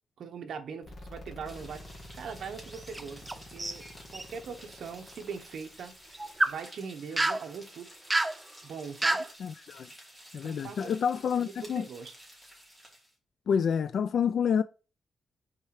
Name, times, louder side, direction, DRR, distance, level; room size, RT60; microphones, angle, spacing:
voice 1, 0.2-1.9 2.1-3.9 4.1-5.9 6.5-7.9 8.6-9.3 10.3-10.9 11.4-12.1, right 6 dB, 65° right, 1.2 m, -41 dB
sound 1, 0.8-6.6, left 1 dB, 45° left, 2.2 m, -49 dB
sound 2, 1.4-13.1, equal, 5° left, 3.2 m, -52 dB
sound 3, 2.7-3.3 3.6-4.3 6.1-6.6 7.2-7.4 8.1-8.4 9.0-9.3, right 2 dB, 15° right, 0.6 m, -28 dB
voice 2, 9.4-9.9 10.3-11.9 13.5-14.6, left 7 dB, 60° left, 0.3 m, -28 dB
6.5 x 4.4 x 4.8 m
cardioid pair, 125°, 0 cm